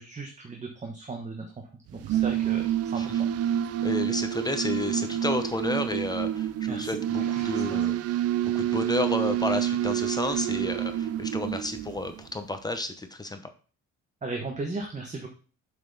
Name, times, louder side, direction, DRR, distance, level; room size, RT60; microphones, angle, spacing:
voice 1, 0.0-1.5 1.9-2.6 2.9-3.3 6.7-6.9 7.3-7.8 14.2-15.3, right 3 dB, 25° right, 3 dB, 1.1 m, -36 dB
sound 1, 1.9-12.3, right 11 dB, 55° right, 0.4 m, -28 dB
voice 2, 3.8-8.2 8.5-13.4, left 2 dB, 15° left, 8 dB, 0.8 m, -31 dB
7.3 x 5.6 x 4.0 m, 0.39 s
cardioid pair, 125°, 30 cm